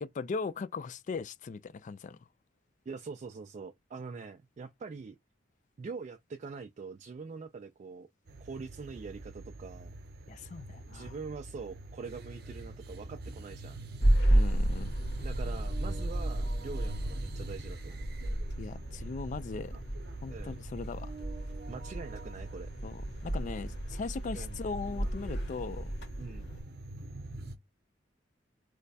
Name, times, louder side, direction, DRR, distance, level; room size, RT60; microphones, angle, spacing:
voice 1, 0.0-2.2 10.3-11.2 14.3-14.9 18.6-19.7 20.2-21.2 22.8-25.9, left 4 dB, 40° left, 0.3 m, -39 dB
voice 2, 2.9-5.2 5.8-8.1 8.4-9.9 10.9-13.8 15.2-18.0 20.3-20.6 21.7-22.7 24.3-24.6 26.2-26.5, right 4 dB, 40° right, 0.3 m, -43 dB
sound 1, 8.3-27.6, right 2 dB, 55° right, 0.7 m, -46 dB
sound 2, 14.0-26.6, right 1 dB, 60° left, 1.5 m, -32 dB
3.1 x 2.2 x 4.0 m
head